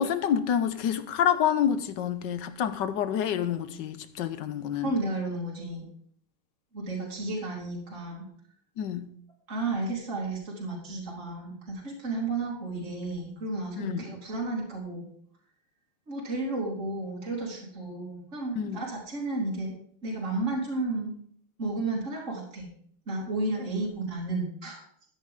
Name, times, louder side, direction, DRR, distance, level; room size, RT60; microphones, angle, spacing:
voice 1, 0.0-4.9 8.8-9.1 13.8-14.1 18.6-18.8, left 9 dB, 65° left, 1.3 m, -28 dB
voice 2, 4.8-5.9 6.7-8.3 9.5-15.1 16.1-19.7 20.0-21.1 21.6-22.7 23.1-24.9, right 2 dB, 35° right, 3.1 m, -32 dB
13.5 x 9.7 x 3.7 m
omnidirectional pair, 2.4 m